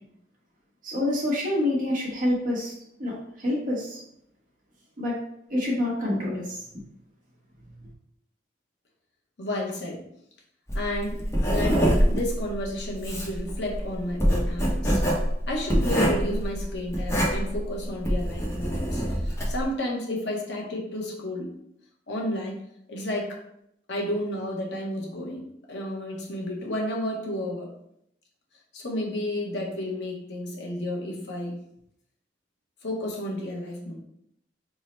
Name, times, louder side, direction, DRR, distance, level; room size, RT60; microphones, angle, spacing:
voice 1, 0.8-2.7 3.0-4.0 5.0-5.2 5.5-6.6, left 1 dB, 50° right, -5 dB, 1.2 m, -27 dB
voice 2, 9.4-10.0 10.7-15.0 15.5-21.5 22.1-22.6 22.9-23.4 23.9-27.7 28.7-31.6 32.8-34.0, left 1 dB, 85° left, -2 dB, 0.9 m, -31 dB
Writing, 10.7-19.6, equal, 15° left, 0.7 m, -25 dB
3.6 x 2.1 x 4.2 m, 0.75 s
head